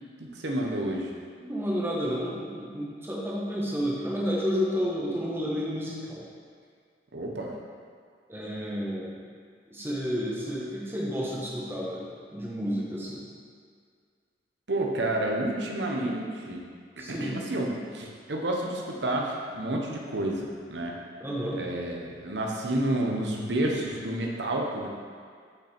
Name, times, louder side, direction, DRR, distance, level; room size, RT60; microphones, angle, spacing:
voice 1, 0.2-1.1 7.1-7.5 14.7-16.6 17.0-20.9 21.6-24.9, right 1 dB, 75° right, 0 dB, 1.0 m, -30 dB
voice 2, 1.4-6.2 8.3-9.2 9.7-13.2 17.0-17.4 21.2-21.6, equal, 15° right, -5 dB, 1.2 m, -31 dB
5.8 x 5.7 x 4.4 m, 2.1 s
head